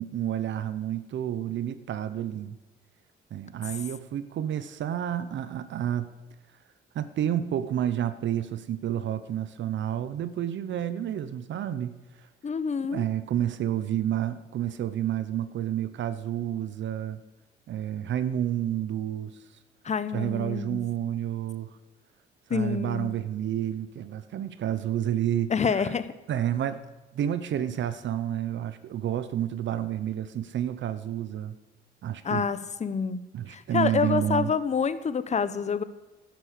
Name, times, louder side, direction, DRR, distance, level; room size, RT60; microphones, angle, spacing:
voice 1, 0.0-2.6 3.3-6.1 6.9-11.9 12.2-12.3 12.9-17.2 17.7-19.4 20.1-21.7 22.5-25.9 26.3-26.8 27.1-31.5 32.0-32.5 33.3-34.5, right 11 dB, 70° right, 13 dB, 0.9 m, -30 dB
voice 2, 12.4-13.1 19.8-20.9 22.5-23.2 25.5-26.1 32.2-35.8, left 6 dB, 35° left, 14 dB, 1.0 m, -28 dB
12.0 x 10.5 x 8.4 m, 1.1 s
cardioid pair, 90°, 20 cm